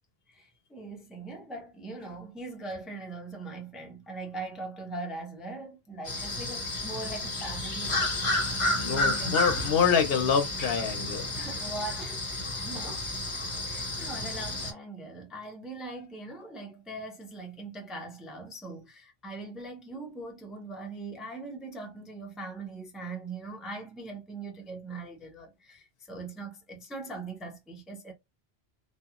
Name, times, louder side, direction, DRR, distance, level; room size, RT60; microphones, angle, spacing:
voice 1, 0.3-8.2 8.7-9.4 11.4-12.2 12.6-13.1 13.6-28.1, right 2 dB, ahead, 0.4 m, -41 dB
sound 1, 6.0-14.7, left 1 dB, 35° left, 0.7 m, -31 dB
voice 2, 8.8-11.3, left 6 dB, 70° left, 0.8 m, -26 dB
2.8 x 2.2 x 2.4 m
omnidirectional pair, 1.0 m